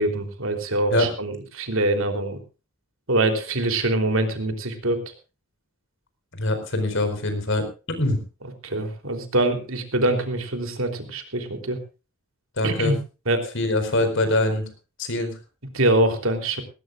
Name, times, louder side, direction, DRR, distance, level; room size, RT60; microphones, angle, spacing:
voice 1, 0.0-2.4 3.1-5.0 8.6-11.8 12.6-12.9 13.3-13.4 15.7-16.6, right 2 dB, 70° right, 6 dB, 3.5 m, -24 dB
voice 2, 6.4-8.2 12.6-12.9 13.5-14.7 15.0-15.3, left 1 dB, 60° left, 9 dB, 4.7 m, -23 dB
19.0 x 18.5 x 2.5 m, 0.32 s
head